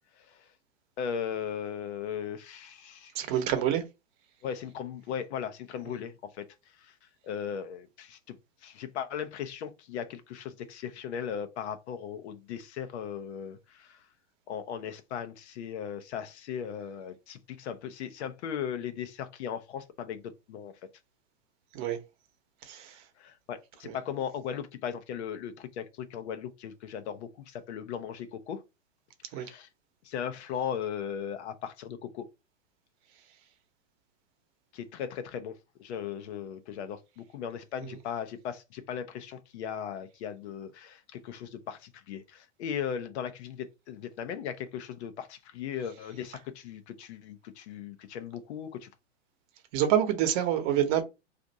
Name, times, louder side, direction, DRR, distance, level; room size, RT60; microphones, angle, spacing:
voice 1, 1.0-3.3 4.4-6.5 6.8-6.9 7.2-8.4 8.6-14.0 14.5-20.7 23.2-28.6 29.3-29.7 30.0-32.2 34.7-48.9, left 8 dB, 65° left, 0.7 m, -37 dB
voice 2, 3.1-3.8 5.9-6.0 21.7-22.0 22.6-23.0 23.9-24.0 29.3-29.5 37.8-37.9 49.7-51.0, right 10 dB, 40° right, 0.9 m, -27 dB
2.5 x 2.5 x 4.0 m
hypercardioid pair, 125°, 36 cm